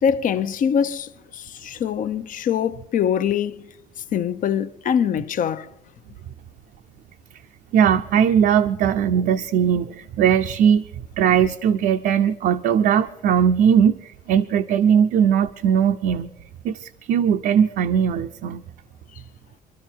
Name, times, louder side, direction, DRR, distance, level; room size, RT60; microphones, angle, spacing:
voice 1, 0.0-5.7 19.1-19.2, left 8 dB, 50° left, 0.7 m, -24 dB
voice 2, 7.7-10.8 11.2-16.3 16.6-18.6, right 8 dB, 70° right, 0.6 m, -19 dB
24.0 x 12.5 x 4.5 m
cardioid pair, 110°, 17 cm